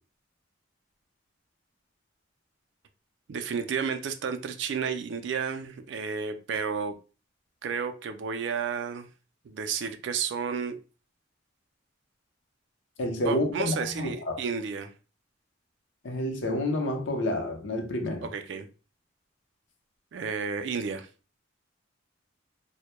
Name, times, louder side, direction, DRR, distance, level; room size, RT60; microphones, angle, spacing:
voice 1, 3.3-6.9 7.6-9.1 9.4-10.7 13.2-14.9 18.2-18.7 20.1-21.1, right 6 dB, 65° right, 0.3 m, -32 dB
voice 2, 13.0-14.4 16.0-18.3, left 1 dB, 70° left, 0.6 m, -29 dB
2.1 x 2.1 x 2.9 m
head